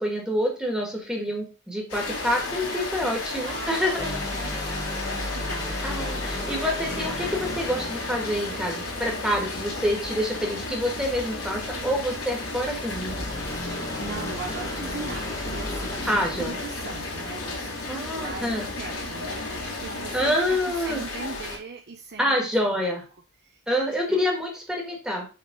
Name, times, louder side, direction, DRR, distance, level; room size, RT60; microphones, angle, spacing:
voice 1, 0.0-4.2 5.8-13.2 16.1-16.5 17.9-18.7 20.1-21.0 22.2-23.0 23.7-25.3, equal, 5° right, 0 dB, 1.6 m, -27 dB
Rain, 1.9-21.6, left 3 dB, 85° left, 2.8 m, -34 dB
voice 2, 3.4-6.5 14.0-22.6 23.4-23.6 24.1-24.2, right 4 dB, 50° right, 3 dB, 0.7 m, -40 dB
sound 1, 4.0-9.5 13.0-17.7, left 1 dB, 15° left, 1.3 m, -35 dB
sound 2, 6.9-20.5, left 1 dB, 55° left, 1.5 m, -40 dB
6.4 x 3.6 x 5.2 m, 0.33 s
head